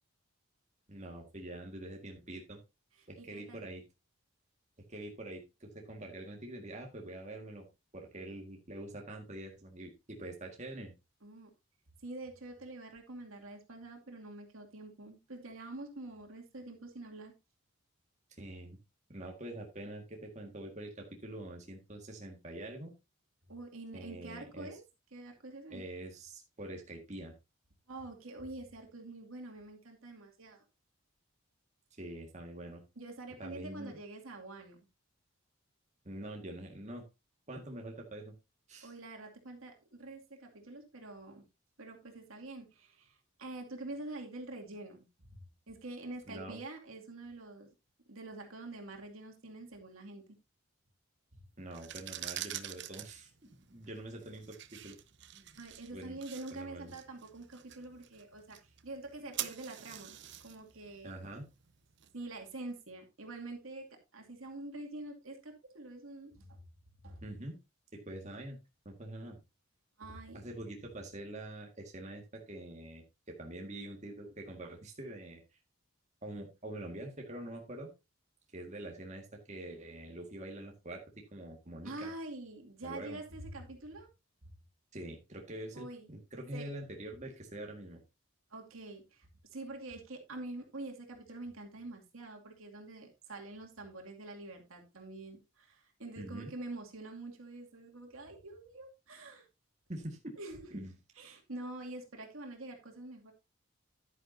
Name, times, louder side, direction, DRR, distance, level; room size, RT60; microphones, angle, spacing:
voice 1, 0.9-2.6 3.1-3.8 4.9-7.6 7.9-10.9 18.4-18.8 19.1-22.9 23.9-24.7 25.7-27.3 32.0-32.8 33.4-34.0 36.1-37.0 37.5-38.3 38.7-38.9 46.3-46.6 51.6-53.3 53.7-55.0 55.3-55.6 55.9-56.2 56.5-56.9 61.0-61.5 67.2-67.6 67.9-68.6 68.9-69.4 70.3-75.4 76.2-77.9 78.5-82.1 82.8-83.2 84.9-88.0 96.2-96.5 99.9-100.3 100.7-100.9, right 1 dB, 35° right, 1 dB, 1.7 m, -45 dB
voice 2, 3.0-3.7 11.2-11.5 12.0-17.3 23.5-24.8 25.1-25.8 27.9-30.6 33.0-34.8 38.8-41.4 41.8-45.4 45.7-47.7 48.1-50.4 55.6-61.2 62.1-66.6 67.0-67.2 70.0-70.4 81.8-84.1 85.7-86.1 86.5-86.7 88.5-99.4 100.4-100.8 101.2-103.3, right 2 dB, 75° right, 2 dB, 2.4 m, -46 dB
sound 1, 51.6-62.5, right 12 dB, 55° right, 0.8 m, -46 dB
10.5 x 9.5 x 2.7 m, 0.25 s
head